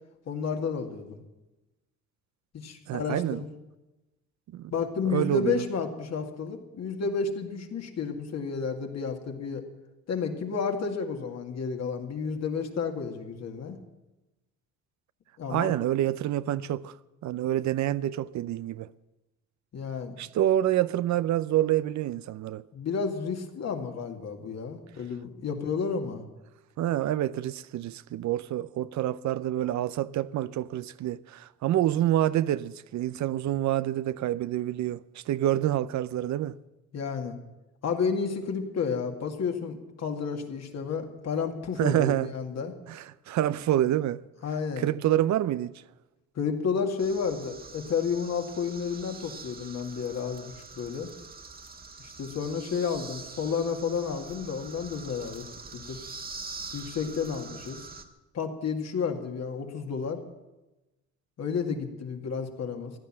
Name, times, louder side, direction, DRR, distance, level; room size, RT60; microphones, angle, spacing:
voice 1, 0.3-1.2 2.5-3.5 4.7-9.6 10.1-13.8 15.4-15.7 19.7-20.1 22.7-26.2 36.9-37.3 37.8-42.7 44.4-44.8 46.3-51.1 52.0-55.5 55.7-56.0 56.7-57.9 58.3-60.2 61.4-62.9, left 5 dB, 60° left, 2.1 m, -31 dB
voice 2, 2.9-3.4 4.5-4.7 5.1-5.6 15.5-16.9 17.2-18.9 20.2-22.6 26.8-36.5 41.8-42.3 42.9-44.2 44.8-45.7, right 12 dB, 70° right, 0.6 m, -27 dB
sound 1, 47.0-58.0, right 4 dB, 30° right, 1.5 m, -44 dB
15.5 x 11.0 x 7.5 m
cardioid pair, 90°, 30 cm